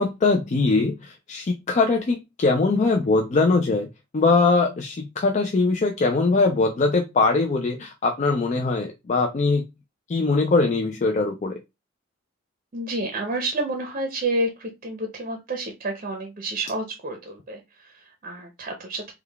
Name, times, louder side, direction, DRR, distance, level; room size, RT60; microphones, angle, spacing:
voice 1, 0.0-3.9 4.1-9.6 10.1-11.5, left 3 dB, 35° left, 3 dB, 0.4 m, -21 dB
voice 2, 12.7-19.1, right 2 dB, 40° right, 3 dB, 0.6 m, -29 dB
3.7 x 2.2 x 3.3 m, 0.24 s
head